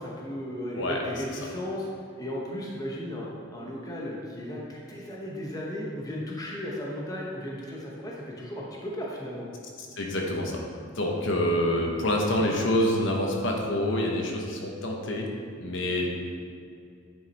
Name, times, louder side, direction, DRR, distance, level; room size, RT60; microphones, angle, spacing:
voice 1, 0.0-1.9 2.2-9.5 16.0-16.1, equal, 20° left, -4 dB, 1.0 m, -35 dB
voice 2, 10.0-10.6 10.9-15.3 15.6-16.1, left 1 dB, 65° left, 0 dB, 1.1 m, -26 dB
9.8 x 4.7 x 4.2 m, 2.4 s
head